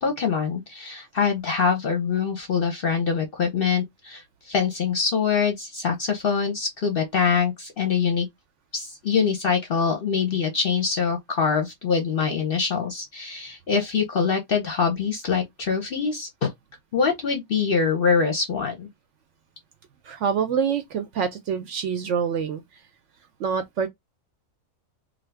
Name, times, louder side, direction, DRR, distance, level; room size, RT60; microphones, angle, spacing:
voice 1, 0.0-8.3 8.7-16.5 16.9-18.9, left 6 dB, 50° left, 0.7 m, -24 dB
voice 2, 20.0-22.6 23.4-23.9, right 6 dB, 65° right, 0.8 m, -26 dB
2.6 x 2.5 x 3.2 m
omnidirectional pair, 1.5 m